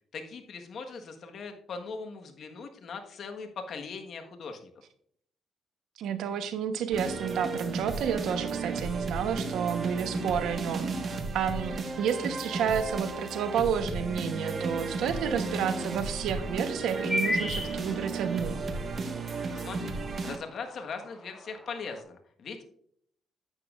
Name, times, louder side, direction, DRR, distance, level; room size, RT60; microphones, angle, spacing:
voice 1, 0.1-4.7 19.5-20.0 20.2-22.7, left 5 dB, 60° left, 5 dB, 1.4 m, -40 dB
voice 2, 6.0-18.6, right 7 dB, 80° right, 9 dB, 1.0 m, -30 dB
sound 1, 6.9-20.4, right 3 dB, 45° right, 1.4 m, -34 dB
sound 2, 15.3-22.0, left 1 dB, 5° left, 2.2 m, -38 dB
10.5 x 9.1 x 2.5 m, 0.65 s
cardioid pair, 90°, 0 cm